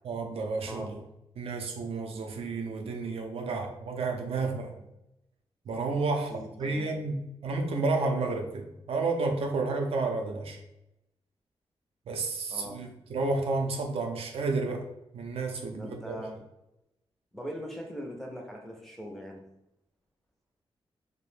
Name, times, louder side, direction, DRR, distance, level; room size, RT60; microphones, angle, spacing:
voice 1, 0.0-1.0 1.4-4.7 5.7-6.3 6.6-10.6 12.1-14.8 15.1-16.2, right 3 dB, 80° right, 3 dB, 0.5 m, -31 dB
voice 2, 6.3-6.9 12.5-12.8 15.7-16.4 17.3-19.5, equal, 5° left, -1 dB, 0.4 m, -41 dB
2.4 x 2.0 x 3.1 m, 0.86 s
wide cardioid pair, 150°, 10 cm